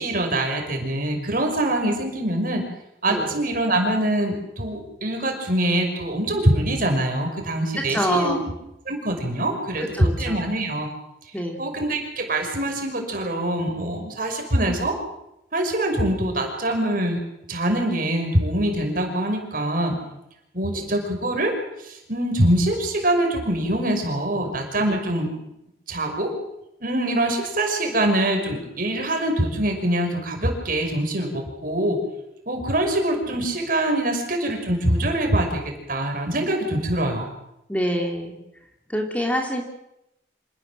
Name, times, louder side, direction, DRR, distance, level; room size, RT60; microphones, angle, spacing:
voice 1, 0.0-2.6 3.0-8.4 8.9-10.9 11.6-15.0 15.5-17.2 17.5-19.9 20.5-21.6 21.8-25.3 25.9-26.4 26.8-32.0 32.5-37.3, right 1 dB, 50° right, 4 dB, 5.7 m, -24 dB
voice 2, 7.8-8.4 9.8-10.4 11.3-11.6 20.7-20.9 24.9-25.0 36.7-36.8 37.7-38.3 38.9-39.6, equal, 10° left, 2 dB, 3.1 m, -26 dB
27.0 x 18.5 x 7.8 m, 0.83 s
head